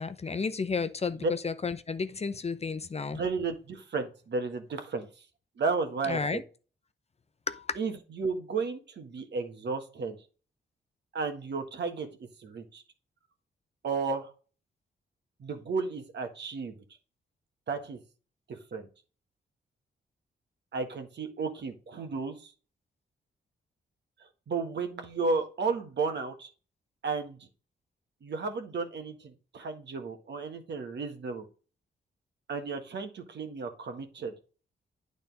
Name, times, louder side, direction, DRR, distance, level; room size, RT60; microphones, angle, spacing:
voice 1, 0.0-3.2 6.1-6.4 7.5-7.8, left 4 dB, 35° left, 0.7 m, -32 dB
voice 2, 3.1-5.1 5.6-6.4 7.7-10.2 11.1-12.8 13.8-14.3 15.4-16.8 17.7-18.0 18.5-18.9 20.7-22.5 24.2-26.5 27.0-27.5 28.2-31.5 32.5-34.3, right 4 dB, 65° right, 1.6 m, -33 dB
9.1 x 4.1 x 5.3 m
cardioid pair, 65°, 19 cm